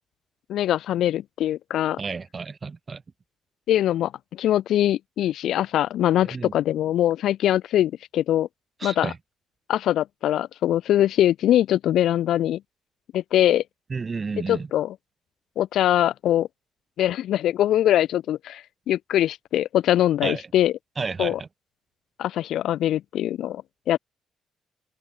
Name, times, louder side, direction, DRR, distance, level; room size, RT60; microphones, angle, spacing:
voice 1, 0.5-2.0 3.7-8.5 8.8-9.1 9.7-12.6 13.1-13.6 14.5-15.0 15.6-16.5 17.0-20.7 21.2-21.4 22.2-23.6 23.9-24.0, left 12 dB, 80° left, 0.3 m, -22 dB
voice 2, 2.0-3.0 6.3-6.5 8.8-9.2 13.9-14.7 20.2-20.4 21.0-21.5, right 4 dB, 35° right, 1.0 m, -31 dB
cardioid pair, 90°, 0 cm